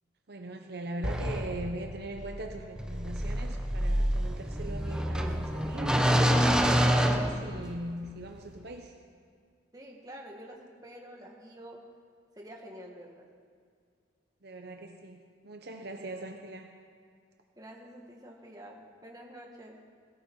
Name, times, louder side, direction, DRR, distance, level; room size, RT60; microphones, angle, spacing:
voice 1, 0.3-6.0 7.0-8.9 14.4-16.7, right 1 dB, 60° right, 4 dB, 0.9 m, -41 dB
sound 1, 1.0-8.0, equal, 5° right, 0.9 m, -28 dB
voice 2, 9.7-11.8 12.3-13.3 17.6-19.8, equal, 20° right, 0 dB, 1.9 m, -48 dB
17.0 x 13.5 x 4.8 m, 2.1 s
head